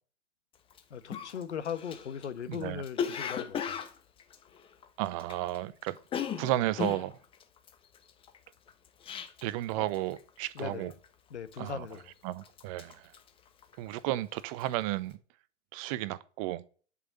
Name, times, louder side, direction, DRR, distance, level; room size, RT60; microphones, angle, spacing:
Cough, 0.7-0.8 1.1-5.6 5.8-9.6 9.9-10.3 10.6-11.0 11.5-12.1 12.4-14.1 14.4-14.7, left 7 dB, 15° left, 1.1 m, -37 dB
voice 1, 0.9-3.8 9.7-9.9 10.5-10.9 11.3-12.1, left 7 dB, 65° left, 1.7 m, -39 dB
voice 2, 2.5-2.8 5.0-6.0 6.4-7.2 9.4-10.9 11.6-11.9 12.2-13.1 13.8-15.2 15.7-16.6, right 15 dB, 30° right, 0.8 m, -33 dB
11.0 x 5.8 x 8.4 m
figure-of-eight pair, 120°, 37 cm